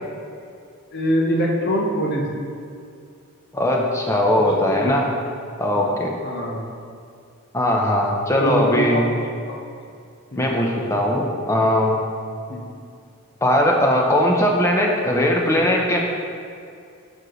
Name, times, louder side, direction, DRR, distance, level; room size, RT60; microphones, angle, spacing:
voice 1, 0.9-2.3 4.3-4.9 5.7-6.7 8.3-9.0 9.3-9.6 10.3-10.5 12.5-12.6, equal, 45° left, -1 dB, 0.9 m, -24 dB
voice 2, 3.5-5.1 5.6-6.1 7.5-9.1 10.4-12.0 13.4-16.0, left 1 dB, 10° left, 0 dB, 0.6 m, -19 dB
7.3 x 6.3 x 3.1 m, 2.4 s
head